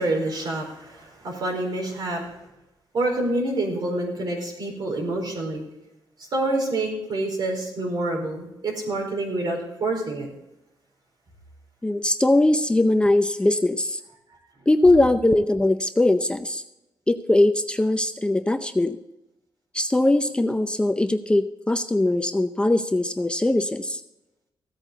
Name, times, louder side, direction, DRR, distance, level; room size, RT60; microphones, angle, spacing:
voice 1, 0.0-2.3 2.9-5.6 6.2-10.3, right 2 dB, 55° right, 1 dB, 4.5 m, -27 dB
voice 2, 11.8-14.0 14.7-16.6 17.1-19.0 19.7-24.0, left 2 dB, 10° left, 9 dB, 0.6 m, -21 dB
15.5 x 8.9 x 4.0 m, 0.91 s
cardioid pair, 115°, 9 cm